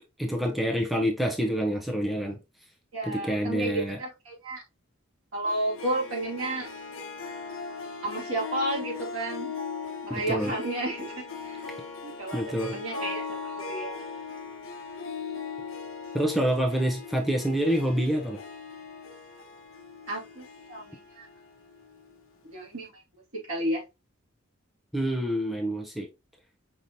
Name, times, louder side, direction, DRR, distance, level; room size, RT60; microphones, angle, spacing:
voice 1, 0.2-2.4 3.0-4.0 10.1-10.5 12.3-12.8 16.1-18.4 24.9-26.1, equal, ahead, 0.7 m, -27 dB
voice 2, 2.9-4.6 5.3-6.7 8.0-9.6 10.0-11.7 12.0-14.0 20.1-21.3 22.5-23.8, right 1 dB, 80° right, 2.2 m, -32 dB
Harp, 5.5-22.2, left 5 dB, 70° left, 0.8 m, -39 dB
5.2 x 3.0 x 2.7 m
head